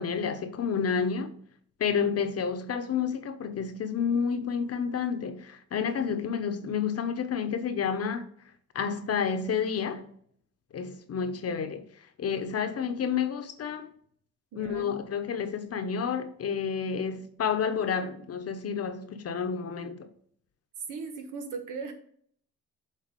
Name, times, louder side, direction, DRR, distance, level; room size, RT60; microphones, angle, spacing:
voice 1, 0.0-1.4 1.8-8.3 8.7-10.1 10.7-11.8 12.2-13.9 14.6-20.1, left 6 dB, 50° left, 1.0 m, -30 dB
voice 2, 14.5-14.9 20.9-21.9, right 4 dB, 85° right, 1.3 m, -38 dB
7.5 x 4.1 x 5.3 m
cardioid pair, 90°, 30 cm